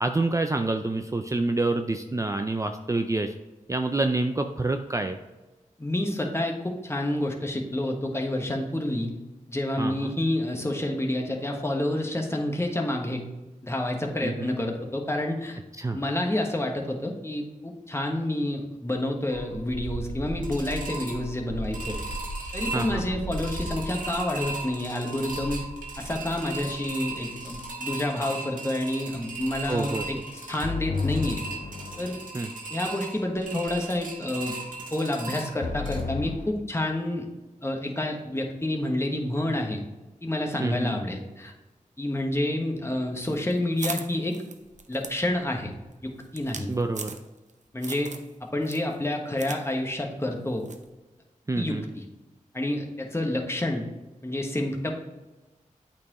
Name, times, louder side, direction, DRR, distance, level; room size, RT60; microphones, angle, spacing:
voice 1, 0.0-3.3 3.7-5.2 9.8-10.1 14.2-14.5 15.8-16.0 22.7-23.2 29.7-30.0 32.3-32.5 40.6-40.9 46.7-47.1 51.5-51.8, right 2 dB, 25° right, 6 dB, 0.4 m, -27 dB
voice 2, 5.8-9.1 9.5-13.2 13.6-15.6 15.9-22.0 22.5-25.6 26.0-30.2 30.5-31.4 32.0-32.2 32.7-34.5 34.9-37.3 37.6-39.8 40.2-41.5 42.0-44.3 44.9-45.7 46.0-46.7 47.7-48.1 48.5-50.6 51.5-52.0 52.5-53.9 54.2-54.9, left 1 dB, 20° left, 1 dB, 1.2 m, -29 dB
sound 1, 19.3-36.0, right 2 dB, 80° right, 1.5 m, -36 dB
sound 2, 30.6-32.3 35.6-36.5, left 5 dB, 65° left, 0.5 m, -32 dB
sound 3, 43.2-47.5 47.8-48.3 48.6-49.6 49.9-50.0 50.7-50.9, right 4 dB, 60° right, 0.7 m, -39 dB
8.4 x 4.4 x 3.0 m, 1.1 s
cardioid pair, 50°, 14 cm